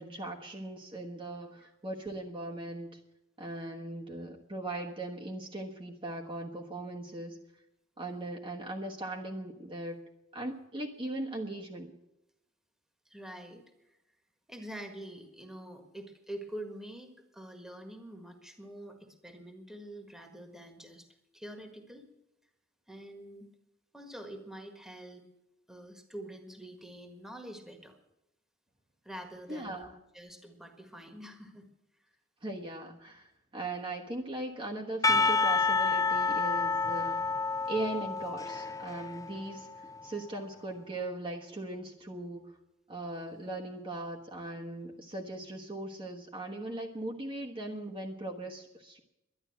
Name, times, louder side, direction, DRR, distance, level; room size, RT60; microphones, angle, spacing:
voice 1, 0.0-3.0 3.4-7.4 8.0-10.0 10.3-11.9 29.5-29.9 32.4-37.2 37.7-42.5 42.9-49.0, right 2 dB, 25° right, -1 dB, 1.3 m, -39 dB
voice 2, 13.1-13.6 14.5-21.1 21.3-22.0 22.9-23.5 23.9-25.2 25.7-28.0 29.0-29.9 30.1-31.7, right 1 dB, ahead, 5 dB, 1.7 m, -46 dB
Percussion / Church bell, 35.0-40.0, left 4 dB, 20° left, 0.4 m, -29 dB
11.5 x 11.0 x 7.9 m, 0.91 s
head